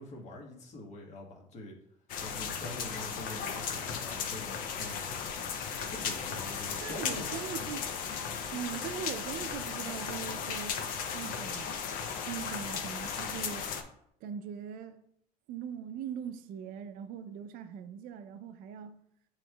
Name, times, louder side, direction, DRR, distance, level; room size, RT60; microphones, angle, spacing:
voice 1, 0.0-1.7 2.2-5.3 5.9-7.5, left 1 dB, 50° left, 1.2 m, -45 dB
sound 1, 2.1-13.8, left 6 dB, 65° left, 0.6 m, -36 dB
voice 2, 6.8-7.9 8.5-10.8 11.1-11.8 12.3-13.7 14.2-15.0 15.5-19.0, right 8 dB, 70° right, 0.4 m, -41 dB
7.5 x 3.1 x 2.2 m
cardioid pair, 100°, 15 cm